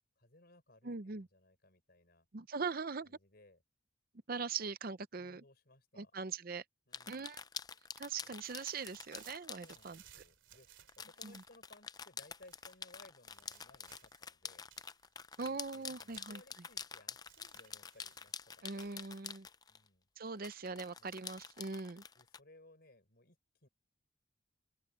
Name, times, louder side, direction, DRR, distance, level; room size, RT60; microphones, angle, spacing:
voice 1, 0.2-2.3 3.0-3.6 5.1-6.2 6.9-7.3 8.2-8.3 9.6-10.7 11.0-14.7 15.4-18.7 19.7-20.1 21.0-21.2 22.2-23.7, left 2 dB, 50° left, 5.4 m, -63 dB
voice 2, 0.8-1.3 2.3-3.2 4.3-5.4 6.0-6.6 7.1-7.4 8.0-10.0 11.2-11.3 15.4-16.4 18.6-19.5 20.2-22.0, right 4 dB, 45° right, 0.6 m, -41 dB
sound 1, 6.9-9.9 10.9-19.9 20.4-22.4, left 6 dB, 20° left, 0.4 m, -48 dB
sound 2, 8.4-11.6 12.4-12.8 13.3-14.3 14.7-16.9 17.3-18.4 18.8-19.1, right 11 dB, 65° right, 3.1 m, -63 dB
head